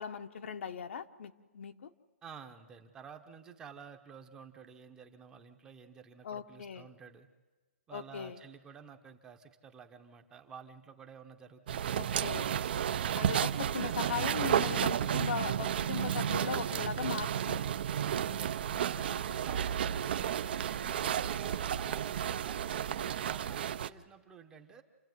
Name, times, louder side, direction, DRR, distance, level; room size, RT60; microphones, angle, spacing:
voice 1, 0.0-1.9 6.2-6.8 7.9-8.4 11.9-12.5 13.1-17.6, left 6 dB, 60° left, 8 dB, 1.2 m, -38 dB
voice 2, 2.2-7.3 7.9-12.6 18.0-24.8, right 6 dB, 10° right, 6 dB, 0.9 m, -52 dB
sound 1, 11.7-23.9, right 9 dB, 45° right, 0.7 m, -32 dB
28.5 x 15.0 x 9.3 m, 1.3 s
hypercardioid pair, 170°, 7 cm